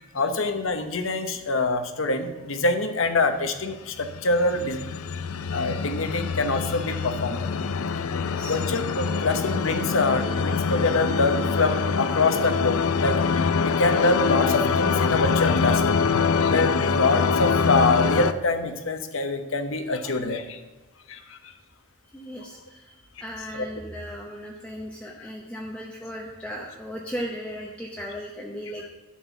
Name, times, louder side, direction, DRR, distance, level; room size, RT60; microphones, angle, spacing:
voice 1, 0.0-4.8 5.5-7.5 8.5-13.2 13.6-16.0 16.3-20.6 21.1-21.4 23.5-23.7 25.2-25.3, left 3 dB, 65° left, 8 dB, 0.9 m, -25 dB
sound 1, 4.0-18.3, left 5 dB, 80° left, 0.5 m, -24 dB
voice 2, 8.2-8.6 22.1-28.8, equal, 5° left, -2 dB, 0.8 m, -36 dB
11.0 x 4.3 x 7.0 m, 1.2 s
head